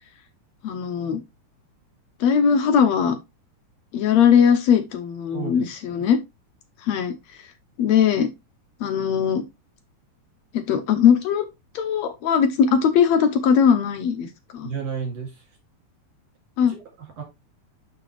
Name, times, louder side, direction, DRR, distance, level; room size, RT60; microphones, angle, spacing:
voice 1, 0.6-1.2 2.2-3.2 3.9-6.2 6.8-7.1 7.8-8.3 8.8-9.4 10.5-11.4 11.8-14.3 14.5-14.7 16.6-16.7, left 7 dB, 70° left, 2.0 m, -19 dB
voice 2, 5.3-6.0 14.6-15.5 16.7-17.2, right 6 dB, 60° right, 3.8 m, -33 dB
6.7 x 6.6 x 3.2 m
omnidirectional pair, 3.4 m